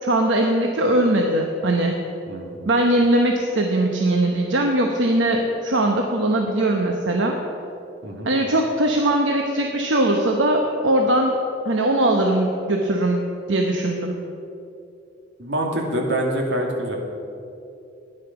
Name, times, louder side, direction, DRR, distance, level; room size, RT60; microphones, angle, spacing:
voice 1, 0.0-2.0 2.7-7.4 8.2-11.4 11.6-13.2 13.5-14.2, right 1 dB, 90° right, 2 dB, 1.0 m, -20 dB
voice 2, 2.3-2.6 8.0-8.3 15.4-17.0, right 1 dB, 75° right, 0 dB, 2.2 m, -25 dB
12.5 x 10.0 x 5.9 m, 2.7 s
head